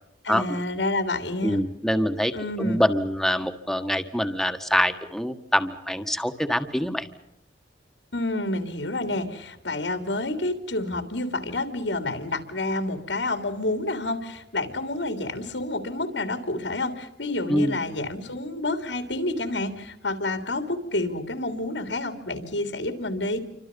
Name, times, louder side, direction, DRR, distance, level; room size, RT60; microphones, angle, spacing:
voice 1, 0.2-1.6 2.3-2.8 8.1-23.4, left 2 dB, 85° left, 8 dB, 3.2 m, -29 dB
voice 2, 1.4-2.3 2.6-7.1 17.5-17.8, equal, ahead, 8 dB, 1.6 m, -25 dB
28.5 x 25.5 x 5.4 m, 0.83 s
head